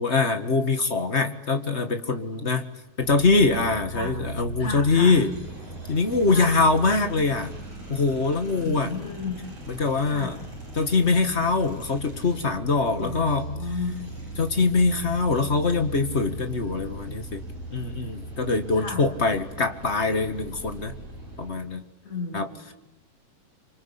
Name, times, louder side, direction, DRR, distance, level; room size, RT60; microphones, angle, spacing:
voice 1, 0.0-2.7 3.0-5.3 5.9-7.5 7.9-8.9 9.7-10.3 10.7-13.6 14.4-17.4 17.7-20.9 21.4-21.8 22.3-22.5, left 3 dB, 35° left, 8 dB, 1.2 m, -23 dB
sound 1, 3.0-21.5, right 2 dB, 45° right, 7.6 m, -39 dB
voice 2, 4.6-5.2 6.3-6.5 8.5-9.4 10.1-10.4 13.0-13.9 18.8-19.0 22.0-22.7, left 4 dB, 55° left, 3 dB, 6.9 m, -33 dB
28.0 x 25.0 x 8.3 m, 0.86 s
omnidirectional pair, 3.9 m